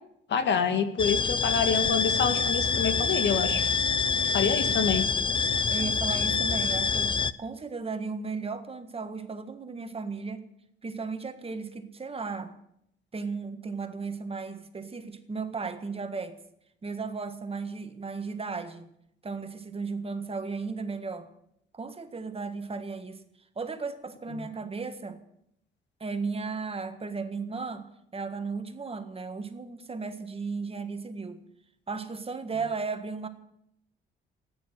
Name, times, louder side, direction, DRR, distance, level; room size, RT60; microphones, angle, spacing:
voice 1, 0.3-3.6 4.3-5.0, left 6 dB, 65° left, 9 dB, 1.8 m, -27 dB
sound 1, 1.0-7.3, left 5 dB, 25° left, 0.6 m, -26 dB
voice 2, 4.1-4.8 5.7-10.5 10.8-12.5 13.1-16.4 16.8-18.9 19.2-21.3 21.7-23.2 23.5-25.2 26.0-31.4 31.9-33.3, right 4 dB, 30° right, 8 dB, 1.6 m, -35 dB
13.5 x 10.0 x 9.3 m, 0.75 s
cardioid pair, 90°, 20 cm